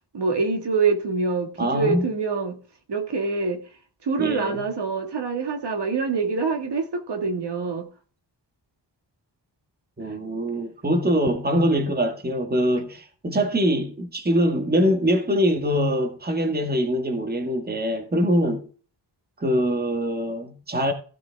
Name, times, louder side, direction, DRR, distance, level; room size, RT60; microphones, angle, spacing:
voice 1, 0.1-2.6 2.9-7.9 10.0-10.2, right 4 dB, 70° right, 2.3 m, -25 dB
voice 2, 1.6-2.0 4.2-4.5 10.0-18.6 19.4-20.9, equal, 20° right, 1.8 m, -23 dB
15.5 x 7.3 x 3.6 m
wide cardioid pair, 135°, 42 cm